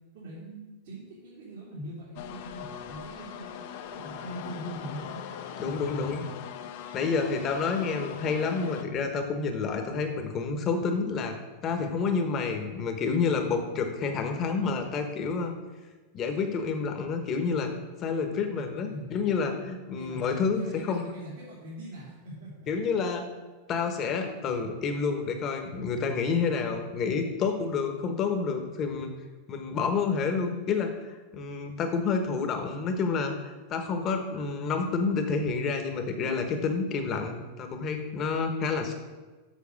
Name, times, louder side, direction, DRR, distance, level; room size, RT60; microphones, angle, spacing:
voice 1, 0.1-3.5 3.9-5.2 5.5-6.1 18.9-19.1 19.9-20.2 20.5-22.7, right 1 dB, 70° right, -7 dB, 3.0 m, -41 dB
sound 1, 2.2-8.8, left 9 dB, 55° left, 0.8 m, -41 dB
voice 2, 5.6-6.2 6.9-11.3 11.6-15.5 16.1-17.7 18.0-21.0 22.7-23.3 23.7-29.1 29.5-39.0, left 5 dB, 25° left, 5 dB, 1.1 m, -29 dB
7.3 x 6.4 x 6.4 m, 1.3 s
supercardioid pair, 160°, 0 cm